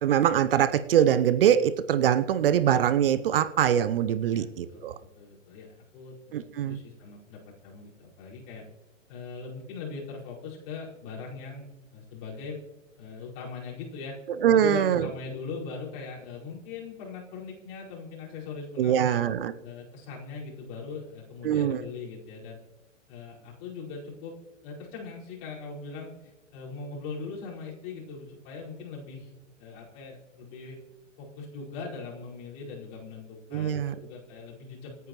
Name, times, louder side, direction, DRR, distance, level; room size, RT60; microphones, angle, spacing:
voice 1, 0.0-5.0 6.3-6.8 14.4-15.1 18.8-19.5 21.4-21.8 33.5-34.0, right 9 dB, 45° right, 15 dB, 0.7 m, -23 dB
voice 2, 4.3-8.6 9.1-12.6 13.0-14.2 14.5-19.2 19.6-22.6 23.1-24.4 24.6-29.3 29.6-30.8 31.2-35.1, left 4 dB, 35° left, -5 dB, 4.9 m, -40 dB
27.0 x 9.3 x 3.1 m, 1.1 s
figure-of-eight pair, 110°, 38 cm